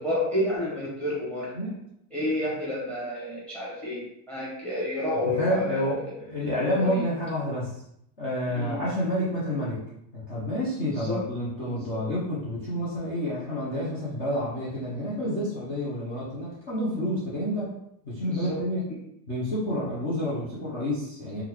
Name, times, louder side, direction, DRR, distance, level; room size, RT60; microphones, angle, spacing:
voice 1, 0.0-1.5 2.1-5.9 6.6-7.0 8.5-8.8 10.9-11.2 11.7-12.1 18.2-18.6 18.9-19.0, left 1 dB, ahead, -5 dB, 0.9 m, -30 dB
voice 2, 5.3-7.7 8.2-9.8 10.1-17.8 18.0-18.9 19.3-21.4, equal, 20° left, -9 dB, 0.3 m, -29 dB
3.7 x 2.2 x 2.9 m, 0.76 s
supercardioid pair, 165°, 46 cm